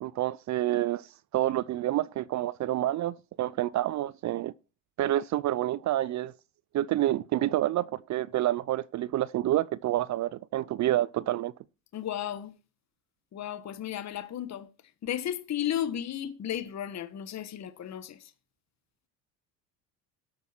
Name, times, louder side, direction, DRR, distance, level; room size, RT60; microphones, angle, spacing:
voice 1, 0.0-4.5 5.0-6.3 6.7-11.5, right 14 dB, 45° right, 0.5 m, -28 dB
voice 2, 11.9-12.5 13.3-14.7 15.0-18.3, left 10 dB, 40° left, 1.3 m, -34 dB
13.0 x 8.5 x 4.3 m
supercardioid pair, 90°, 40 cm